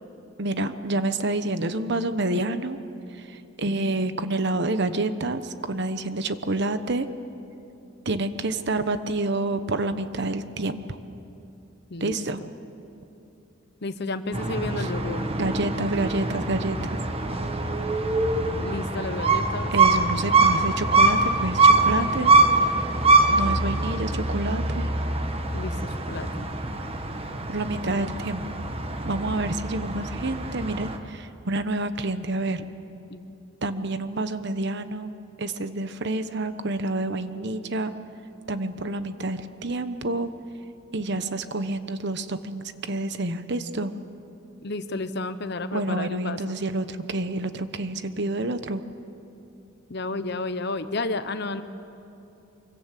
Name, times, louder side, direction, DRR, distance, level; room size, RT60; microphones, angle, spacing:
voice 1, 0.4-2.8 3.2-7.1 8.0-11.0 12.0-12.4 14.8-14.9 15.4-17.0 19.7-22.3 23.3-24.9 27.5-28.5 29.0-32.7 33.6-35.1 35.4-37.9 38.5-40.3 40.9-43.9 45.7-48.8, right 2 dB, 60° right, 10 dB, 1.1 m, -28 dB
voice 2, 11.9-12.5 13.8-15.3 18.5-19.7 25.5-26.5 33.1-33.3 44.6-46.4 49.9-51.6, left 2 dB, 55° left, 11 dB, 1.0 m, -32 dB
sound 1, 14.3-31.0, right 3 dB, 30° right, 1.4 m, -23 dB
25.0 x 24.0 x 7.6 m, 2.7 s
head